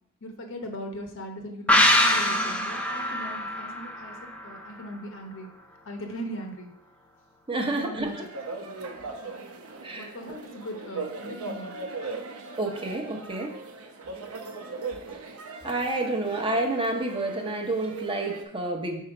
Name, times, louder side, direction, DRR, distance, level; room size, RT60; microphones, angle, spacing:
voice 1, 0.2-5.5 5.9-6.7 7.7-8.3 10.0-11.7, equal, 65° left, 4 dB, 0.9 m, -39 dB
sound 1, 1.7-5.1 5.4-5.5, left 1 dB, 5° left, 0.6 m, -24 dB
voice 2, 7.5-8.1 9.8-10.1 12.6-13.5 15.6-19.0, right 2 dB, 25° right, 2 dB, 0.8 m, -29 dB
sound 2, 8.0-18.4, right 3 dB, 80° right, 0.8 m, -39 dB
5.5 x 4.3 x 4.9 m, 0.73 s
head